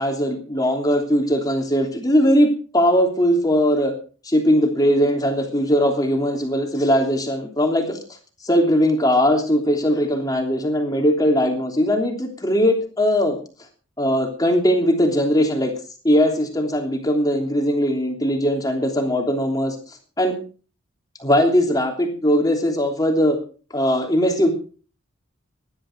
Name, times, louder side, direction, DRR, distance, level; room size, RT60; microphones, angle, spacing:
voice 1, 0.0-3.9 4.2-8.0 8.4-13.4 14.0-15.7 16.0-19.7 20.2-20.4 21.2-23.4 23.7-24.5, equal, 20° left, 3 dB, 3.1 m, -19 dB
18.0 x 11.5 x 4.7 m, 0.38 s
head